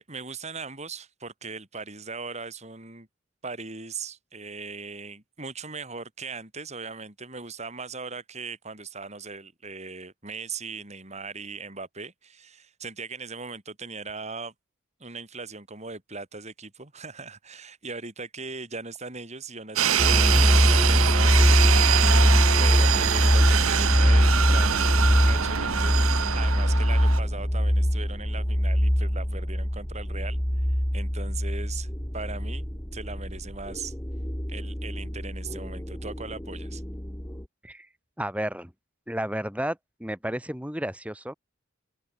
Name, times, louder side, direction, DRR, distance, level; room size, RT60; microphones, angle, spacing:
voice 1, 0.0-3.1 3.4-14.5 15.0-21.9 22.3-30.7 30.9-33.9 34.5-36.8, right 4 dB, 30° right, 4.3 m, -39 dB
sound 1, 19.8-27.2, right 9 dB, 85° right, 1.1 m, -25 dB
sound 2, 20.0-37.4, equal, 10° left, 1.8 m, -23 dB
voice 2, 38.2-38.7 39.1-41.3, right 1 dB, 5° right, 6.3 m, -32 dB
open air
head